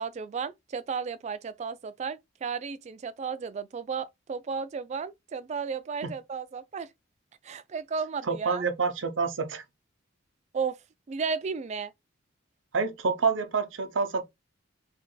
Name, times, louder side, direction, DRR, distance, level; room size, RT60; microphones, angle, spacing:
voice 1, 0.0-6.9 7.4-8.6 10.5-10.8 11.1-11.9, right 5 dB, 35° right, 0.3 m, -34 dB
voice 2, 8.3-9.6 12.7-14.2, right 4 dB, 85° right, 0.7 m, -27 dB
2.9 x 2.6 x 3.8 m
head